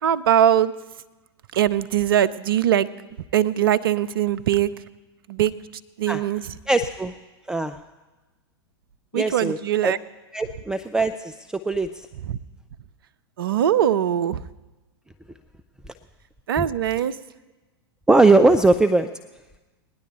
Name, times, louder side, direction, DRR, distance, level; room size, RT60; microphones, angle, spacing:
voice 1, 0.0-0.7 1.5-2.9 3.3-4.7 5.3-5.5 6.0-6.4 9.1-10.0 12.3-12.4 13.4-14.4 16.5-17.2, right 10 dB, 60° right, 16 dB, 0.6 m, -21 dB
voice 2, 6.7-7.1 7.5-7.8 9.1-9.6 9.8-9.9 10.3-12.1 16.6-16.7 18.1-19.1, right 2 dB, 5° right, 10 dB, 0.4 m, -20 dB
19.0 x 10.0 x 4.3 m, 1.2 s
figure-of-eight pair, 95°, 13 cm